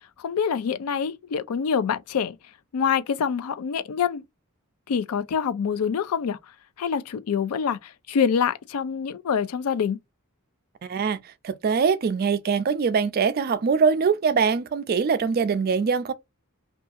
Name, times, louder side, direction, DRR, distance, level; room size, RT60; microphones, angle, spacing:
voice 1, 0.2-2.4 2.7-4.2 4.9-6.4 6.8-10.0, left 7 dB, 85° left, 0.4 m, -25 dB
voice 2, 10.8-11.2 11.4-16.1, right 5 dB, 45° right, 0.3 m, -23 dB
2.7 x 2.3 x 2.4 m
head